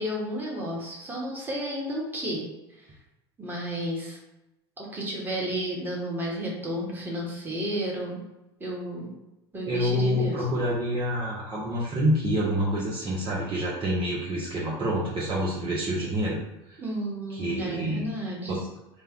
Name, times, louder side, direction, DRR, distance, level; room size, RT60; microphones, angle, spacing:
voice 1, 0.0-2.4 2.8-2.9 3.4-4.2 4.8-8.2 8.6-9.1 9.5-10.4 16.8-18.5, equal, 15° right, -4 dB, 1.5 m, -32 dB
voice 2, 9.7-16.4 16.7-16.8 17.3-18.0 18.5-18.6, equal, 35° right, -6 dB, 0.9 m, -27 dB
3.2 x 2.2 x 3.7 m, 0.95 s
hypercardioid pair, 90°, 14 cm